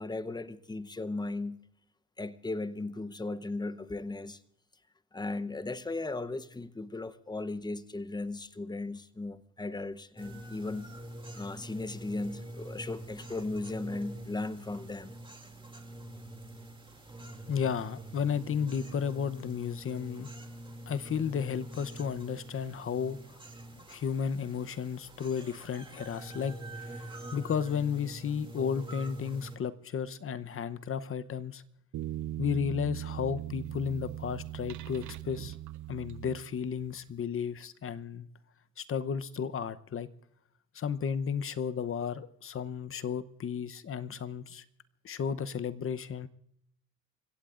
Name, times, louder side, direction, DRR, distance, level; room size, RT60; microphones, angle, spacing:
voice 1, 0.0-1.6 2.2-4.4 5.1-10.9 11.3-15.2, left 2 dB, 15° left, 0.8 m, -37 dB
sound 1, 10.2-29.6, right 1 dB, 15° right, 2.5 m, -45 dB
voice 2, 17.5-20.3 20.9-23.4 23.7-31.6 32.4-35.6 35.9-38.3 38.8-40.1 40.7-44.6 45.0-46.3, left 7 dB, 45° left, 0.8 m, -33 dB
sound 2, 31.9-36.9, right 13 dB, 75° right, 0.6 m, -39 dB
29.5 x 16.0 x 2.5 m
cardioid pair, 90°, 30 cm